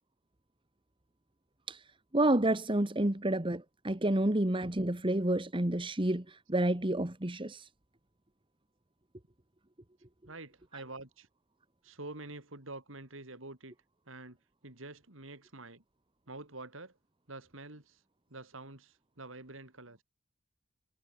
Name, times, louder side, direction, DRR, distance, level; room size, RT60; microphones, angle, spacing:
voice 1, 2.1-7.7, right 1 dB, 25° right, 1.5 m, -29 dB
voice 2, 10.3-11.3 11.8-13.7 14.1-14.4 14.6-15.8 16.3-16.9 17.3-18.0 18.3-20.0, right 2 dB, 75° right, 4.5 m, -47 dB
head